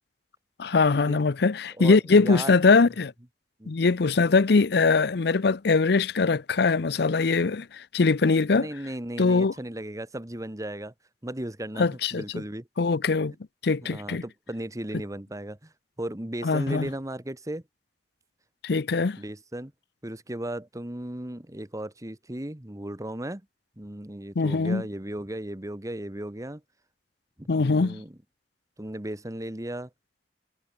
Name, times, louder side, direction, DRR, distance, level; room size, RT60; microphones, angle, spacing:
voice 1, 0.6-3.1 3.7-8.7 9.2-9.5 11.8-12.2 12.8-13.3 13.6-14.2 16.4-16.9 18.6-19.2 24.4-24.8 27.5-28.0, left 4 dB, 65° left, 0.6 m, -22 dB
voice 2, 1.8-2.5 3.6-3.7 8.5-10.9 11.2-11.9 12.1-12.7 13.8-15.7 16.0-17.6 19.2-19.7 20.0-23.4 23.8-26.6 27.4-28.1 28.8-29.9, right 1 dB, 20° right, 1.5 m, -36 dB
head